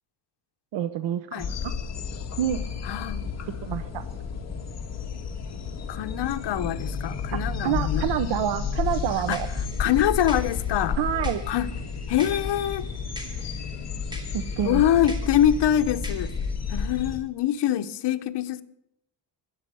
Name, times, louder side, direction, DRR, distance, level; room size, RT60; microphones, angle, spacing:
voice 1, 0.7-1.7 2.4-2.6 3.6-4.0 7.3-9.5 11.0-11.4 14.3-14.8, right 10 dB, 75° right, 0.8 m, -28 dB
sound 1, 1.4-17.2, left 5 dB, 35° left, 1.9 m, -31 dB
voice 2, 2.8-3.3 5.9-8.1 9.3-9.4 9.8-11.0 11.5-11.7 12.1-12.9 14.6-16.3 16.7-18.6, left 11 dB, 65° left, 1.1 m, -24 dB
sound 2, 8.8-16.5, equal, 10° right, 2.5 m, -46 dB
13.0 x 9.8 x 9.2 m
cardioid pair, 165°, 44 cm